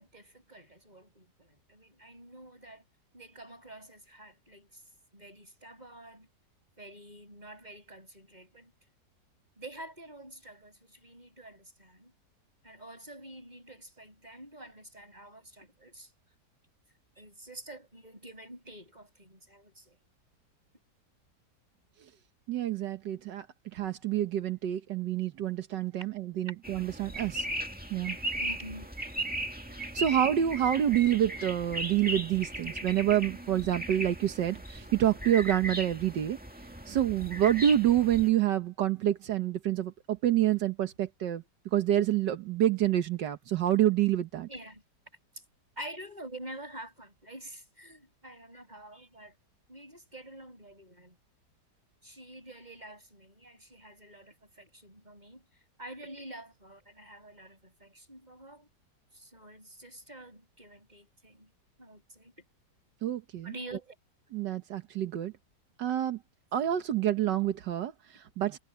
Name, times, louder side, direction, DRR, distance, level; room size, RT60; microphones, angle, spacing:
voice 1, 0.0-2.9 3.1-4.8 5.1-6.3 6.8-8.7 9.6-12.1 12.6-16.1 17.2-20.0 28.4-28.9 44.5-44.8 45.3-45.4 45.8-49.4 49.7-51.2 52.0-55.4 55.8-58.7 59.1-61.5 61.8-62.3 63.4-63.9, right 1 dB, 25° right, 7.9 m, -48 dB
voice 2, 22.5-23.5 23.7-27.5 27.9-28.2 29.7-36.4 36.9-41.4 41.7-44.5 63.0-63.5 64.3-65.3 65.8-66.2 66.5-68.6, right 11 dB, 85° right, 1.7 m, -28 dB
sound 1, 26.6-38.3, right 1 dB, 5° right, 1.8 m, -37 dB
omnidirectional pair, 1.8 m